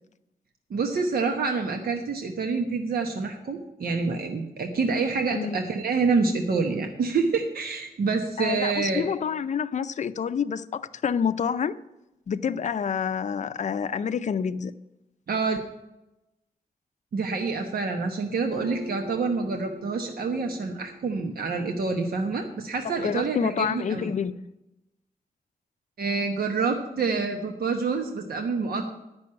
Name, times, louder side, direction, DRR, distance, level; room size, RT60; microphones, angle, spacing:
voice 1, 0.7-9.0 15.3-15.6 17.1-24.1 26.0-28.9, right 4 dB, 75° right, 1.1 m, -27 dB
voice 2, 8.4-11.7 12.3-14.7 23.0-24.3, left 7 dB, 50° left, 0.5 m, -28 dB
Acoustic guitar, 18.5-22.1, equal, 50° right, 1.4 m, -44 dB
10.0 x 6.1 x 8.7 m
wide cardioid pair, 145°, 16 cm